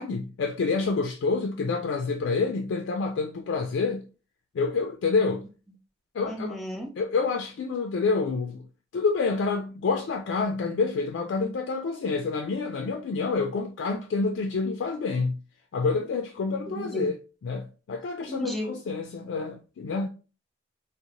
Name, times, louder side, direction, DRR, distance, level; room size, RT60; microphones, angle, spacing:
voice 1, 0.0-4.0 4.5-5.5 6.1-6.6 7.0-8.6 8.9-15.4 15.7-20.1, left 4 dB, 75° left, 0.3 m, -28 dB
voice 2, 6.2-6.9 16.7-17.1 18.3-18.8, equal, ahead, 0.5 m, -33 dB
2.6 x 2.0 x 2.8 m
head